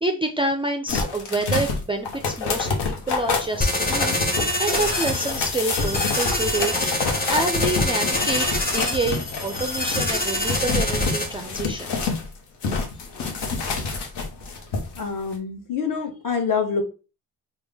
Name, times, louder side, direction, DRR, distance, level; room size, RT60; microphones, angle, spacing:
voice 1, 0.0-6.8 7.3-12.2, right 2 dB, 15° right, 4 dB, 0.4 m, -28 dB
sound 1, 0.9-12.3 12.6-15.0 15.3-15.4, left 4 dB, 70° left, 1.0 m, -27 dB
sound 2, 3.6-11.3, left 1 dB, 20° left, 1.0 m, -26 dB
voice 2, 14.9-16.8, left 5 dB, 50° left, 3 dB, 1.2 m, -26 dB
3.5 x 2.3 x 3.4 m, 0.32 s
cardioid pair, 70°, 42 cm